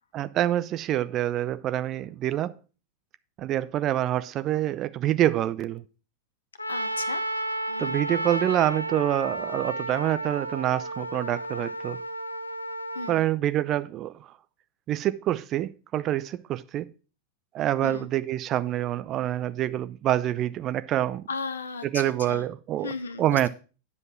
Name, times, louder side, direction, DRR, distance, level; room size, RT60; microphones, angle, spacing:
voice 1, 0.1-2.5 3.4-5.8 7.8-12.0 13.1-14.3 14.9-16.9 17.5-21.3 21.9-22.9 23.2-23.5, right 12 dB, 35° right, 0.6 m, -26 dB
Trumpet, 6.6-13.2, right 1 dB, 85° left, 0.6 m, -32 dB
voice 2, 6.7-7.2 7.7-8.0 12.9-13.3 17.8-18.1 21.3-22.4 22.8-23.5, left 4 dB, 70° left, 0.9 m, -36 dB
9.5 x 5.4 x 5.9 m
figure-of-eight pair, 90°, 0 cm